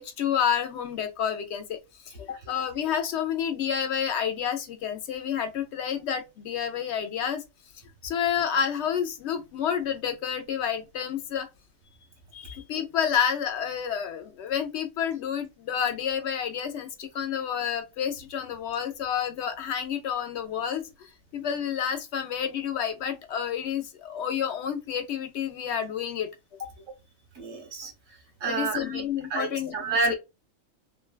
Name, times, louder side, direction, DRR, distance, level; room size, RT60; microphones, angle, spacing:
voice 1, 0.0-1.8 2.0-7.4 8.0-11.5 12.3-26.3 26.6-26.7 28.5-30.2, left 8 dB, 65° left, 0.8 m, -29 dB
voice 2, 27.3-29.0 29.3-30.2, right 3 dB, 85° right, 1.5 m, -30 dB
3.1 x 2.2 x 2.2 m
omnidirectional pair, 1.4 m